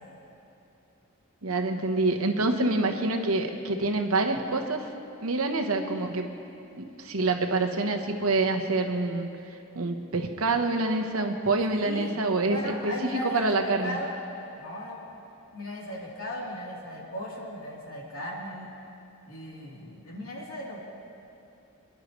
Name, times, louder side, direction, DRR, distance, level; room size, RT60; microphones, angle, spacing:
voice 1, 1.4-4.9 5.2-6.3 6.8-9.3 9.7-12.9 13.2-14.0, right 2 dB, 85° right, 4 dB, 1.1 m, -26 dB
voice 2, 11.7-12.2 12.5-14.1 14.6-15.0 15.5-18.7 19.3-20.8, left 1 dB, 70° left, -5 dB, 3.4 m, -36 dB
27.5 x 11.0 x 3.2 m, 2.8 s
head